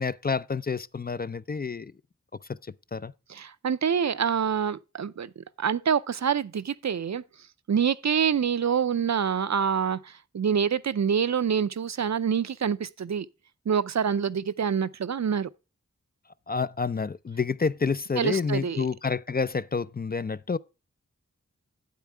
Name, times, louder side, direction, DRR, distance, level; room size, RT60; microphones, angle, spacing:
voice 1, 0.0-1.9 2.9-3.1 16.5-20.6, left 5 dB, 35° left, 0.4 m, -28 dB
voice 2, 3.3-7.2 7.7-13.3 13.7-15.5 18.2-18.9, right 7 dB, 65° right, 0.5 m, -26 dB
9.3 x 8.4 x 3.4 m
wide cardioid pair, 55°, 29 cm